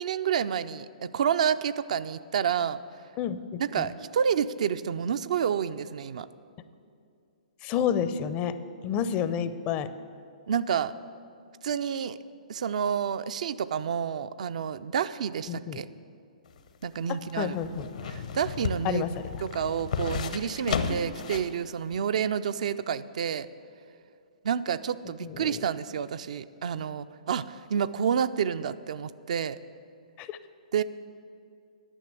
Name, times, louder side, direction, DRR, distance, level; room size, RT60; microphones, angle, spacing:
voice 1, 0.0-2.8 3.6-6.3 10.5-10.9 11.6-12.2 12.5-15.9 16.8-17.5 18.1-19.0 19.4-23.5 24.4-29.6 30.7-30.8, right 8 dB, 60° right, 13 dB, 0.4 m, -29 dB
voice 2, 3.2-3.9 7.6-8.5 8.8-9.9 15.5-15.8 17.4-17.9 18.8-19.4 25.2-25.7 30.2-30.4, left 8 dB, 30° left, 13 dB, 0.5 m, -30 dB
sound 1, 16.5-21.6 21.9-22.0, left 6 dB, 65° left, 0.8 m, -33 dB
9.9 x 6.0 x 8.2 m, 2.4 s
hypercardioid pair, 125°, 4 cm